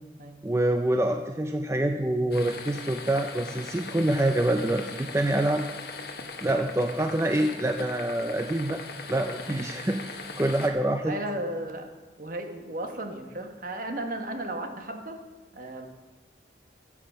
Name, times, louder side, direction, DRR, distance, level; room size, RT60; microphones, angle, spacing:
voice 1, 0.4-5.6 6.4-8.8 9.1-11.2, right 1 dB, 15° right, 5 dB, 0.4 m, -26 dB
sound 1, 2.3-10.7, left 4 dB, 60° left, 1.3 m, -40 dB
voice 2, 11.0-11.9 12.2-15.2 15.5-15.9, right 1 dB, 50° right, 5 dB, 1.3 m, -34 dB
14.5 x 7.2 x 5.7 m, 1.2 s
head